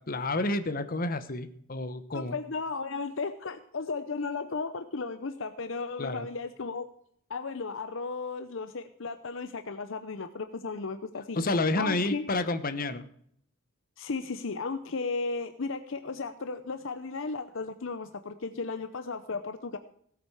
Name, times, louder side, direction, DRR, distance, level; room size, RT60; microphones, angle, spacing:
voice 1, 0.1-2.4 6.0-6.3 11.3-13.0, left 2 dB, 45° left, 10 dB, 1.1 m, -29 dB
voice 2, 2.1-6.9 7.3-11.4 11.8-12.2 14.0-19.8, left 4 dB, 65° left, 9 dB, 0.7 m, -35 dB
17.0 x 8.8 x 4.9 m, 0.66 s
head